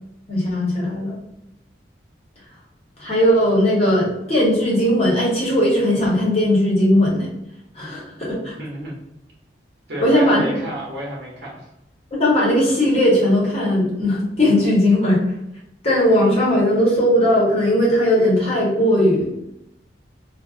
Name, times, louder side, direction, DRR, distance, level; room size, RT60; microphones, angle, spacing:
voice 1, 0.3-1.2 3.0-7.3 7.7-8.6 10.0-10.4 12.1-15.2 15.8-19.3, left 1 dB, 35° left, -5 dB, 0.9 m, -18 dB
voice 2, 8.4-9.0 9.9-11.7, right 1 dB, 70° right, -5 dB, 0.8 m, -31 dB
2.4 x 2.2 x 2.3 m, 0.83 s
head